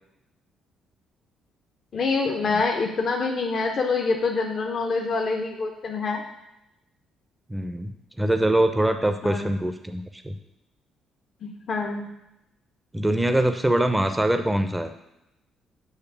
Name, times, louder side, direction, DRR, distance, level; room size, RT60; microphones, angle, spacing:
voice 1, 1.9-6.2 9.2-9.6 11.4-12.1, left 4 dB, 50° left, 2 dB, 0.8 m, -26 dB
voice 2, 7.5-10.3 12.9-14.9, right 1 dB, 10° right, 7 dB, 0.7 m, -23 dB
8.1 x 3.2 x 5.9 m, 0.86 s
figure-of-eight pair, 45°, 0 cm